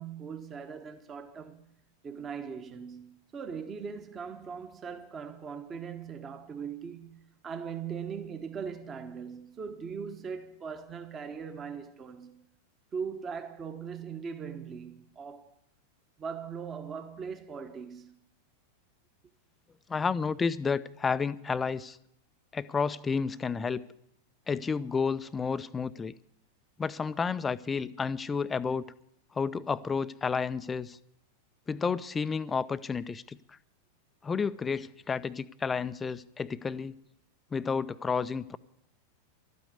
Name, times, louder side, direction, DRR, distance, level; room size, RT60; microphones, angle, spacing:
voice 1, 0.0-1.6 2.0-12.4 12.9-15.5 16.2-18.2, right 6 dB, 25° right, 1.2 m, -40 dB
voice 2, 19.9-22.0 22.5-23.8 24.5-26.1 26.8-28.9 29.3-31.0 31.7-33.6 34.2-36.9 37.5-38.6, left 5 dB, 15° left, 0.5 m, -31 dB
12.5 x 8.9 x 9.5 m
figure-of-eight pair, 90°, 0 cm